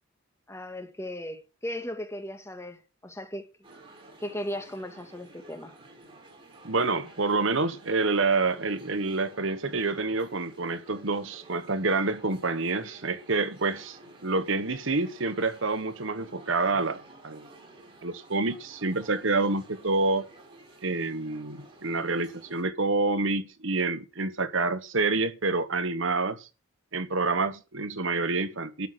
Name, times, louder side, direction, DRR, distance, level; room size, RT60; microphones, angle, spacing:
voice 1, 0.5-3.5 4.2-5.7, left 1 dB, 15° left, 1.8 m, -37 dB
sound 1, 3.6-22.6, right 2 dB, 25° right, 5.8 m, -52 dB
voice 2, 6.6-17.5 18.0-20.2 20.8-26.5 26.9-28.9, right 3 dB, 65° right, 1.2 m, -28 dB
13.0 x 5.8 x 7.9 m
head